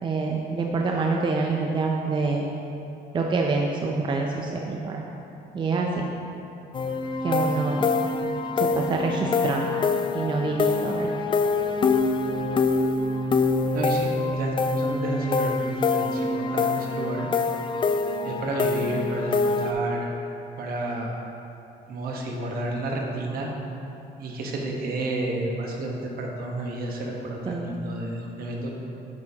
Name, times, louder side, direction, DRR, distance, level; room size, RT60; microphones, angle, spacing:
voice 1, 0.0-2.5 3.1-5.0 5.5-6.1 7.2-7.9 8.6-9.7 10.1-11.1 27.5-27.8, right 3 dB, 30° right, 0 dB, 0.5 m, -26 dB
sound 1, 6.7-19.7, left 4 dB, 30° left, 0.4 m, -25 dB
voice 2, 13.7-17.3 18.2-20.1 20.6-21.1 21.9-23.5 24.2-28.7, right 2 dB, 60° right, 0 dB, 1.2 m, -31 dB
8.5 x 6.5 x 2.9 m, 2.8 s
cardioid pair, 110°, 17 cm